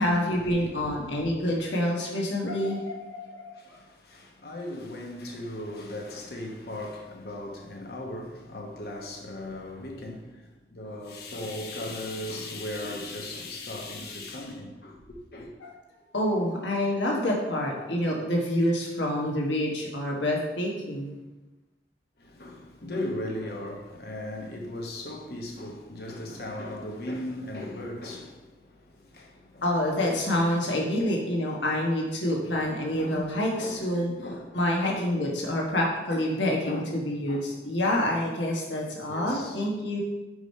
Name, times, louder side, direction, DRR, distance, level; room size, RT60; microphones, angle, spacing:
voice 1, 0.0-3.5 15.6-15.7 16.1-21.2 29.6-34.1 34.5-40.0, left 1 dB, 85° left, 1.3 m, -27 dB
voice 2, 3.5-15.5 22.2-29.6 30.0-30.1 32.9-33.2 33.6-35.1 35.5-35.6 36.1-36.3 36.7-36.9 37.3-37.5 39.1-39.6, left 1 dB, 55° left, 1.0 m, -38 dB
5.0 x 4.9 x 5.4 m
head